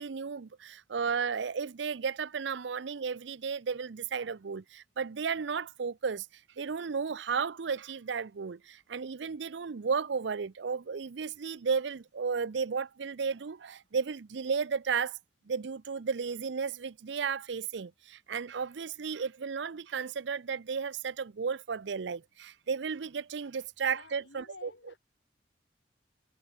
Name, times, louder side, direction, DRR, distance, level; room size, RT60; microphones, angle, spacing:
voice 1, 0.0-6.3 6.6-15.2 15.5-24.7, right 5 dB, 70° right, 0.5 m, -34 dB
voice 2, 23.9-25.0, left 3 dB, 80° left, 4.9 m, -51 dB
head